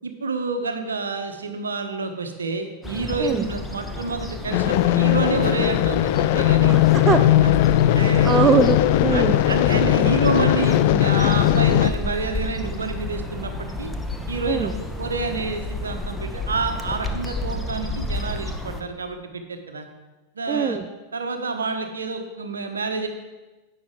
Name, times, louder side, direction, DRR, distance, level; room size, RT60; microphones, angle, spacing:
voice 1, 0.0-6.8 7.3-7.5 7.9-8.5 9.1-13.9 14.3-19.9 20.3-20.8 21.1-23.1, right 3 dB, 70° right, 6 dB, 1.1 m, -28 dB
sound 1, 2.8-18.8, left 1 dB, 5° left, 0.9 m, -32 dB
sound 2, 4.5-11.9, left 13 dB, 50° left, 0.4 m, -18 dB
voice 2, 6.7-7.2 8.2-9.4 14.5-14.7 20.5-20.9, right 6 dB, 20° right, 8 dB, 0.5 m, -22 dB
11.5 x 8.4 x 3.7 m, 1.2 s
figure-of-eight pair, 90°, 0 cm